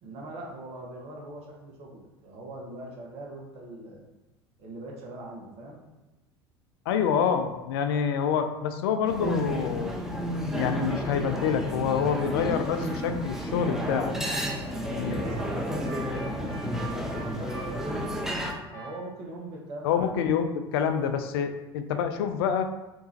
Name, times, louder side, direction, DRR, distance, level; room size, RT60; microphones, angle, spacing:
voice 1, 0.0-4.0 4.6-5.8 14.2-18.1 18.7-20.1, right 2 dB, 45° right, -1 dB, 1.0 m, -41 dB
voice 2, 6.9-10.0 10.5-14.1 14.9-15.2 19.8-22.7, left 7 dB, 65° left, 7 dB, 0.4 m, -27 dB
sound 1, 9.1-18.5, equal, 5° right, 0.5 m, -31 dB
sound 2, 10.9-19.0, right 2 dB, 20° left, 1.4 m, -44 dB
3.6 x 3.0 x 2.7 m, 1.0 s
figure-of-eight pair, 75°, 14 cm